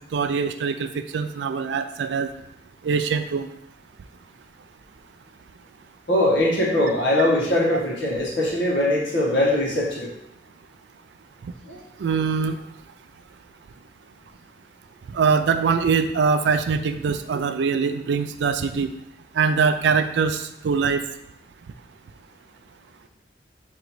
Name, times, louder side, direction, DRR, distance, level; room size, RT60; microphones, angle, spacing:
voice 1, 0.1-2.3 2.8-3.5 12.0-12.6 15.1-18.9 19.4-21.0, right 5 dB, 70° right, 9 dB, 0.3 m, -23 dB
voice 2, 6.1-10.1 11.7-11.8, left 1 dB, 80° left, -5 dB, 1.6 m, -21 dB
3.8 x 3.0 x 4.6 m, 0.80 s
head